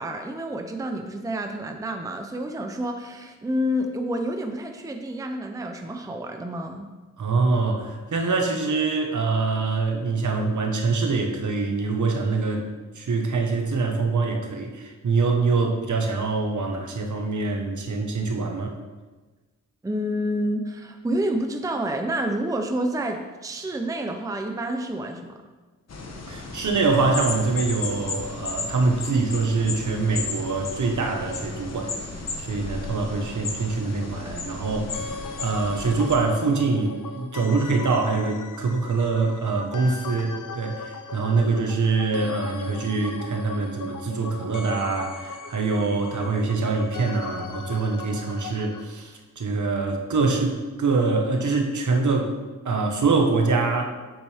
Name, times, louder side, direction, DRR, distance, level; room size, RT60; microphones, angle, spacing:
voice 1, 0.0-6.9 19.8-25.4, equal, 10° right, 5 dB, 0.6 m, -29 dB
voice 2, 7.2-12.7 12.9-18.7 26.3-31.9 32.4-35.1 35.4-52.3 52.6-53.9, right 3 dB, 60° right, 2 dB, 1.4 m, -24 dB
sound 1, 25.9-36.2, left 3 dB, 50° left, 1.2 m, -34 dB
sound 2, 34.9-48.8, left 4 dB, 65° left, 0.8 m, -39 dB
11.5 x 7.9 x 3.5 m, 1.3 s
wide cardioid pair, 165°, 33 cm